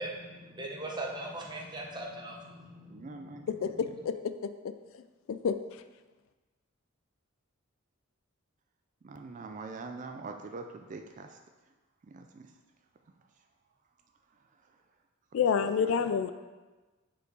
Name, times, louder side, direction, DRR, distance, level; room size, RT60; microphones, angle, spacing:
voice 1, 0.0-3.4, right 1 dB, 20° right, -1 dB, 0.8 m, -40 dB
voice 2, 2.9-3.7 9.0-11.4 12.1-12.5 15.6-16.1, right 3 dB, 35° right, 5 dB, 0.3 m, -44 dB
voice 3, 3.5-4.7 5.3-5.6 15.3-16.3, left 6 dB, 65° left, 11 dB, 0.3 m, -29 dB
5.4 x 4.4 x 4.7 m, 1.2 s
head